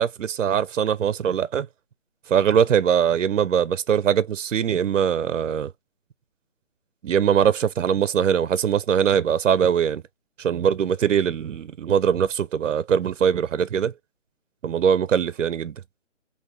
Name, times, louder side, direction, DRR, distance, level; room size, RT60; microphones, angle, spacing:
voice 1, 0.0-1.7 2.3-5.7 7.0-10.0 10.4-13.9 14.6-15.7, right 8 dB, 70° right, 0.5 m, -22 dB
4.6 x 2.7 x 3.3 m
hypercardioid pair, 175°, 38 cm